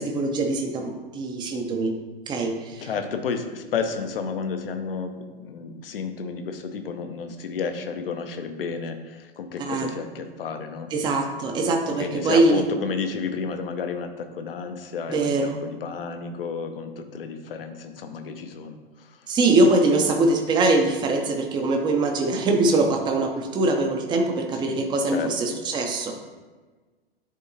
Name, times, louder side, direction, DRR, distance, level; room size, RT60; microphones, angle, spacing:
voice 1, 0.0-1.9 2.3-2.9 9.6-9.9 10.9-12.6 15.1-15.6 19.3-26.1, right 2 dB, 15° right, 3 dB, 0.6 m, -22 dB
voice 2, 2.8-5.2 5.4-10.9 12.0-19.2 24.5-24.7 25.1-25.3, left 5 dB, 65° left, 7 dB, 0.8 m, -31 dB
10.0 x 3.5 x 2.8 m, 1.3 s
figure-of-eight pair, 105°, 31 cm